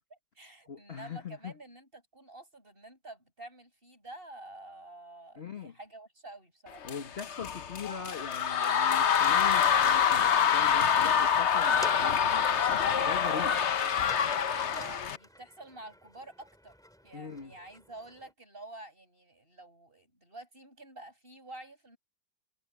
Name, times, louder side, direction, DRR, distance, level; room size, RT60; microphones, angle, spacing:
voice 1, 0.1-6.9 14.6-16.8 17.0-22.0, right 2 dB, 25° right, 8.3 m, -49 dB
voice 2, 0.7-1.5 5.4-5.7 6.9-12.5 12.9-13.6 17.1-17.6, left 5 dB, 30° left, 1.4 m, -41 dB
sound 1, 6.8-15.2, left 8 dB, 65° left, 0.6 m, -26 dB
sound 2, 11.6-18.3, equal, ahead, 3.1 m, -50 dB
omnidirectional pair, 2.4 m